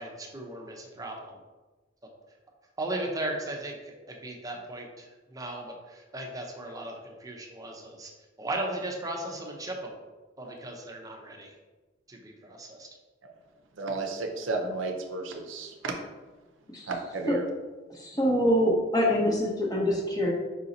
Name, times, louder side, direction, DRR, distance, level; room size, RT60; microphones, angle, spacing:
voice 1, 0.0-1.4 2.8-8.1 8.4-10.0 10.4-11.6 12.1-12.9, right 1 dB, 20° right, 0 dB, 0.6 m, -37 dB
voice 2, 13.7-15.9 16.9-17.4, right 3 dB, 80° right, 4 dB, 0.6 m, -33 dB
voice 3, 17.9-20.3, equal, 20° left, -1 dB, 0.8 m, -25 dB
5.0 x 2.7 x 3.9 m, 1.3 s
head